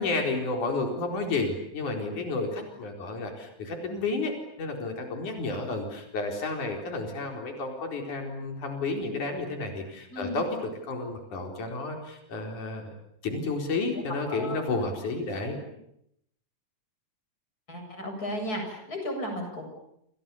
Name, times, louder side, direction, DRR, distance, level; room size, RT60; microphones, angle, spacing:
voice 1, 0.0-12.9 13.2-15.6, left 3 dB, 85° left, 3 dB, 5.8 m, -31 dB
voice 2, 14.2-14.6 17.7-19.6, equal, 30° left, 4 dB, 8.1 m, -34 dB
29.0 x 29.0 x 7.1 m, 0.76 s
omnidirectional pair, 3.4 m